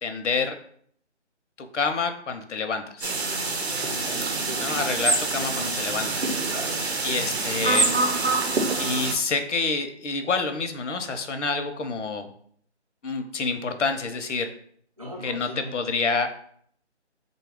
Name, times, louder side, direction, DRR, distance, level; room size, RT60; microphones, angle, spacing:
voice 1, 0.0-0.6 1.6-3.1 4.6-6.4 7.0-8.0 8.8-12.3 13.0-14.5 15.2-16.3, left 4 dB, 85° left, 7 dB, 0.7 m, -28 dB
sound 1, 3.0-9.1, right 3 dB, 65° right, 0.7 m, -26 dB
voice 2, 3.8-5.0 6.5-6.8 15.0-15.7, equal, 30° right, -2 dB, 0.7 m, -39 dB
3.7 x 2.3 x 3.5 m, 0.63 s
hypercardioid pair, 175°, 35 cm